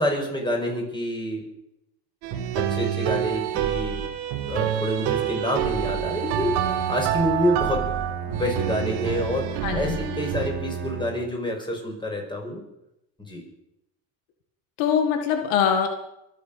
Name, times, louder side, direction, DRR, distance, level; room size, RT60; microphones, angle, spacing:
voice 1, 0.0-1.4 2.5-4.0 4.4-7.9 8.2-12.6 13.3-13.4, equal, 10° left, 0 dB, 6.0 m, -27 dB
sound 1, 2.2-10.5, right 10 dB, 85° right, 1.9 m, -27 dB
Bowed string instrument, 5.6-11.3, right 7 dB, 25° right, 3.6 m, -34 dB
voice 2, 9.6-10.0 14.8-15.9, left 8 dB, 75° left, 5 dB, 2.0 m, -22 dB
23.5 x 8.2 x 6.9 m, 0.86 s
supercardioid pair, 85°, 49 cm